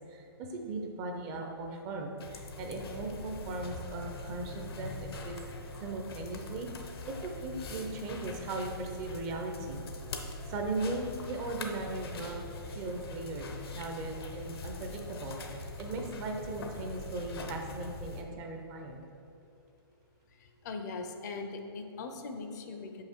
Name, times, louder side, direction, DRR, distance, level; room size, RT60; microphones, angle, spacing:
voice 1, 0.1-5.4 5.8-6.7 7.1-9.8 10.5-13.5 13.7-19.0, right 2 dB, 25° right, 2 dB, 0.6 m, -38 dB
sound 1, 2.2-18.2, left 3 dB, 70° left, 0.9 m, -42 dB
voice 2, 20.4-23.0, left 3 dB, 45° left, 5 dB, 0.6 m, -40 dB
5.7 x 5.6 x 4.5 m, 2.7 s
hypercardioid pair, 150°, 13 cm